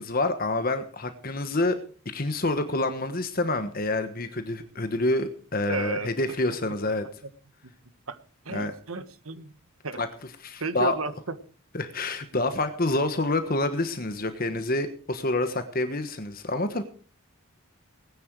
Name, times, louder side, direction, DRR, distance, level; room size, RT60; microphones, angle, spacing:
voice 1, 0.0-1.8 2.1-7.0 8.5-8.7 9.9-10.1 10.4-11.0 11.7-16.8, left 2 dB, 40° left, 8 dB, 1.3 m, -27 dB
voice 2, 5.7-6.1 8.1-8.2 8.4-9.5 9.8-10.0 10.6-11.4, right 4 dB, 75° right, 12 dB, 1.5 m, -32 dB
19.5 x 10.5 x 4.7 m, 0.40 s
head